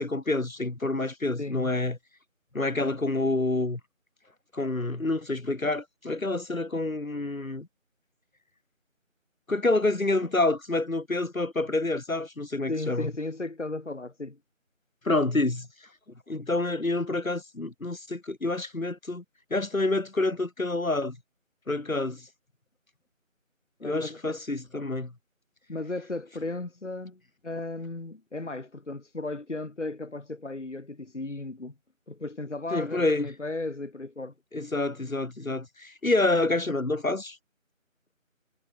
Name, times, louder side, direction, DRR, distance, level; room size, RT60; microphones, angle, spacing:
voice 1, 0.0-2.0 2.5-3.8 4.5-7.7 9.5-13.1 15.0-15.7 16.3-19.2 19.5-21.2 21.7-22.3 23.8-25.1 32.7-33.3 34.5-37.4, left 2 dB, 85° left, 3.1 m, -28 dB
voice 2, 1.4-1.7 2.7-3.0 12.7-14.4 23.8-24.4 25.7-31.7 32.1-34.3, left 2 dB, 60° left, 2.1 m, -35 dB
figure-of-eight pair, 180°, 40 cm